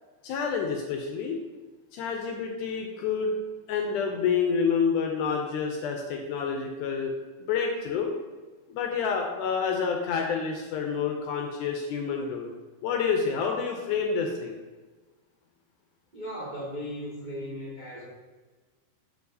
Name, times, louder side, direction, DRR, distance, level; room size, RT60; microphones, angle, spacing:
voice 1, 0.2-1.4 1.9-3.3 3.7-7.1 7.4-8.1 8.7-12.5 12.8-14.5, left 6 dB, 80° left, 2 dB, 1.9 m, -28 dB
voice 2, 16.1-18.1, equal, 50° right, -7 dB, 0.5 m, -37 dB
6.9 x 6.5 x 2.7 m, 1.3 s
omnidirectional pair, 4.0 m